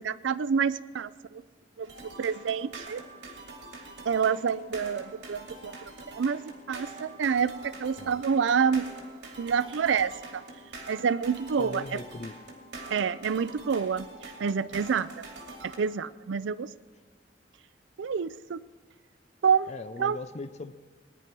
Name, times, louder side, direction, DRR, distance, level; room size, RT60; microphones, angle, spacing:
voice 1, 0.0-1.4 1.8-1.9 2.2-3.0 4.1-5.8 6.1-8.9 9.4-10.4 10.9-12.0 12.9-15.1 15.6-16.7 18.0-18.6 19.4-19.7 20.0-20.2, right 6 dB, 85° right, 18 dB, 0.4 m, -28 dB
sound 1, 1.8-15.8, right 2 dB, 65° right, 2.5 m, -45 dB
voice 2, 11.6-12.4 19.7-20.7, left 3 dB, 40° left, 13 dB, 0.5 m, -39 dB
19.0 x 10.5 x 4.6 m, 1.5 s
head